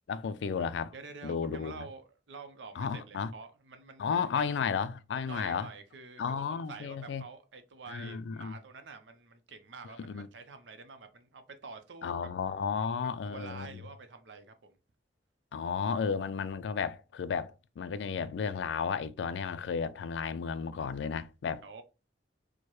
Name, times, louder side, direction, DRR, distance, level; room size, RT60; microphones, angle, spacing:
voice 1, 0.1-0.9 1.2-1.8 2.8-3.3 4.0-5.7 6.2-7.2 7.9-8.5 10.0-10.3 12.0-13.8 15.5-21.6, left 6 dB, 75° left, 0.3 m, -33 dB
voice 2, 0.9-4.1 4.3-4.7 5.2-12.2 13.2-14.8 21.6-21.8, right 4 dB, 85° right, 0.6 m, -48 dB
4.6 x 2.1 x 3.0 m
head